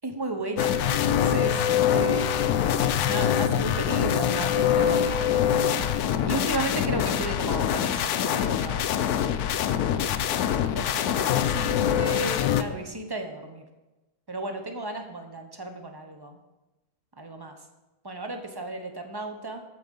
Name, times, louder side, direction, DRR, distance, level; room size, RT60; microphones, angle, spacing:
voice 1, 0.0-2.5 3.1-5.7 6.2-8.9 10.2-10.3 10.7-13.7 14.3-16.4 17.2-17.6 18.0-19.6, right 2 dB, 20° right, 5 dB, 0.7 m, -34 dB
sound 1, 0.6-12.6, left 9 dB, 80° left, 1.1 m, -24 dB
14.0 x 4.9 x 5.4 m, 1.1 s
omnidirectional pair, 1.6 m